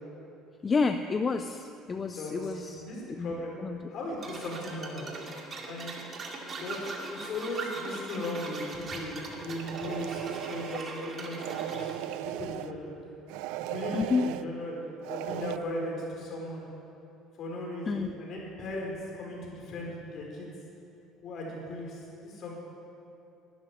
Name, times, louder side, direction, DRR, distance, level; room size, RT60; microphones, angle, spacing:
voice 1, 0.6-2.8 3.1-3.3 3.6-3.8 13.9-14.2 17.9-18.1, left 4 dB, 25° left, 8 dB, 0.5 m, -29 dB
voice 2, 2.1-3.6 3.9-5.1 5.7-6.1 6.5-12.9 13.5-14.8 15.1-16.7 17.4-20.5 21.2-22.5, left 1 dB, 50° left, -1 dB, 4.5 m, -37 dB
sound 1, 4.2-12.0, right 3 dB, 35° right, 2.2 m, -40 dB
sound 2, 9.4-10.9 11.4-12.7 13.3-14.5 15.0-15.6, right 14 dB, 85° right, 0.4 m, -37 dB
12.5 x 9.7 x 10.0 m, 2.9 s
cardioid pair, 135°, 0 cm